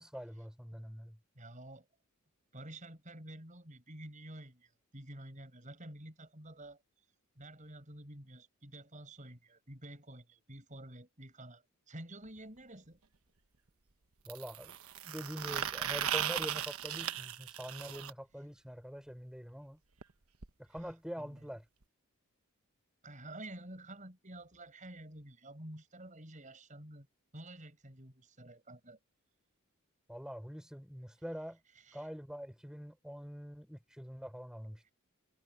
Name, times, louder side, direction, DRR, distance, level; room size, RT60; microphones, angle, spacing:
voice 1, 0.0-1.2 14.2-19.8 20.6-21.7 30.1-31.6 31.9-34.9, equal, 5° right, 5.0 m, -45 dB
voice 2, 1.3-1.9 2.5-6.8 7.4-13.0 21.2-21.4 23.0-27.1 27.3-29.0 31.9-32.0, right 1 dB, 35° right, 6.1 m, -50 dB
sound 1, 12.2-12.3 14.3-18.1 20.0-20.1 20.4-20.5 20.8-20.9 21.8-21.9, right 9 dB, 80° right, 1.2 m, -37 dB
head